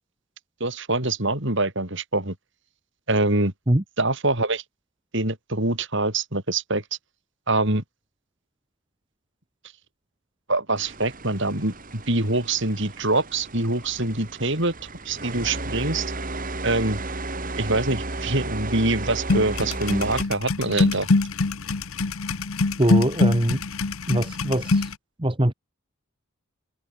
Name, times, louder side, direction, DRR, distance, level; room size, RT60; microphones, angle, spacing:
voice 1, 0.6-2.3 3.1-3.5 4.0-4.6 5.1-6.8 7.5-7.8 10.5-14.7 15.0-16.1 16.6-17.0 17.6-21.1, right 2 dB, 55° right, 4.6 m, -24 dB
sound 1, 10.8-20.2, right 2 dB, 40° right, 4.3 m, -34 dB
sound 2, 19.3-24.9, left 3 dB, 75° left, 1.0 m, -24 dB
voice 2, 22.8-23.6 24.1-24.9 25.2-25.5, right 1 dB, 25° right, 1.4 m, -22 dB
head